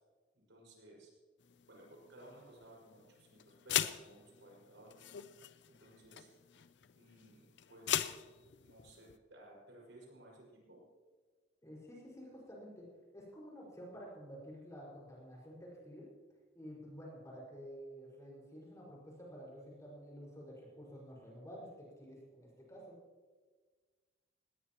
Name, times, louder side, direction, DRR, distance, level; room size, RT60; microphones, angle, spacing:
voice 1, 0.3-1.1 1.7-5.1 5.7-6.3 6.9-8.0 8.6-10.8, right 1 dB, 85° right, -2 dB, 5.7 m, -58 dB
sound 1, 1.4-9.1, left 10 dB, 70° left, 0.5 m, -41 dB
voice 2, 11.6-12.9 13.1-16.1 16.5-23.0, equal, 15° left, -4 dB, 5.3 m, -51 dB
19.5 x 18.5 x 3.0 m, 1.4 s
head